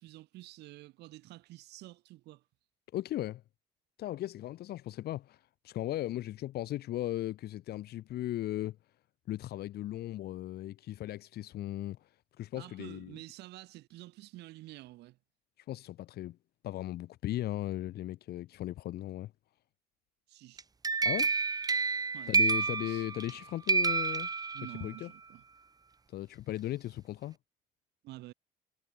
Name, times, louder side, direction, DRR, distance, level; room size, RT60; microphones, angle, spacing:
voice 1, 0.0-2.4 12.6-15.2 20.3-20.6 22.1-23.0 24.5-25.4 28.0-28.3, right 17 dB, 80° right, 4.4 m, -49 dB
voice 2, 2.9-3.4 4.0-8.8 9.3-13.2 15.6-16.4 16.6-19.3 21.0-21.3 22.3-24.3 24.8-25.1 26.1-27.4, left 14 dB, 70° left, 2.0 m, -37 dB
sound 1, 20.6-23.4 23.7-25.0, right 4 dB, 20° right, 1.3 m, -29 dB
cardioid pair, 110°, 17 cm